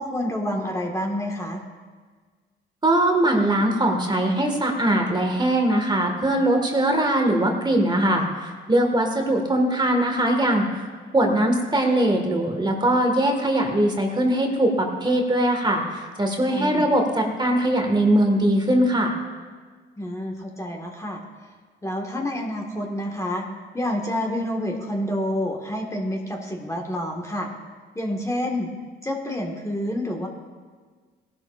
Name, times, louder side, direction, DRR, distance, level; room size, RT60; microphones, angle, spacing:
voice 1, 0.0-1.6 16.5-16.9 20.0-21.2 21.8-23.5 23.7-27.5 27.9-28.7 29.0-30.3, left 1 dB, 15° left, 0 dB, 1.6 m, -28 dB
voice 2, 2.8-10.7 11.1-19.1, right 1 dB, 20° right, 2 dB, 1.7 m, -21 dB
18.0 x 11.5 x 2.5 m, 1.5 s
cardioid pair, 90°, 20 cm